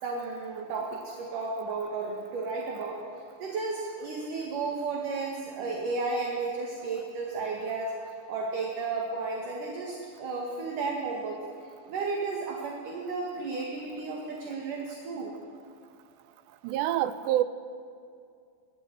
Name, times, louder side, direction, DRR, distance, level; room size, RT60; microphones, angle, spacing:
voice 1, 0.0-3.0 3.4-7.9 8.3-11.4 11.8-15.4, right 3 dB, 55° right, -1 dB, 3.2 m, -33 dB
voice 2, 16.6-17.4, right 13 dB, 80° right, 12 dB, 2.9 m, -26 dB
23.5 x 20.0 x 7.8 m, 2.4 s
omnidirectional pair, 5.1 m